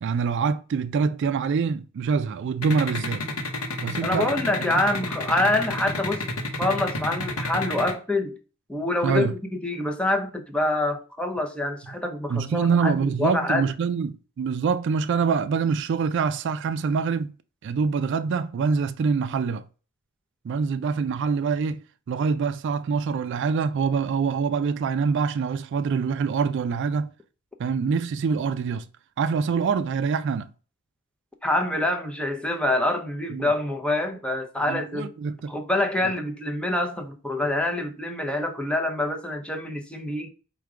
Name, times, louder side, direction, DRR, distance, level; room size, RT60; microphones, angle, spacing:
voice 1, 0.0-3.2 3.8-4.3 9.0-9.3 12.3-17.3 17.6-19.6 20.4-21.8 22.1-27.1 27.6-28.9 29.2-30.5 33.3-33.5 34.7-35.5 36.0-36.1, right 5 dB, 55° right, 0.3 m, -25 dB
sound 1, 2.6-7.9, left 2 dB, 75° left, 0.8 m, -29 dB
voice 2, 4.0-6.3 6.6-8.4 8.7-13.7 31.4-35.1 35.5-40.3, left 1 dB, 5° left, 0.6 m, -26 dB
4.7 x 2.2 x 4.8 m
head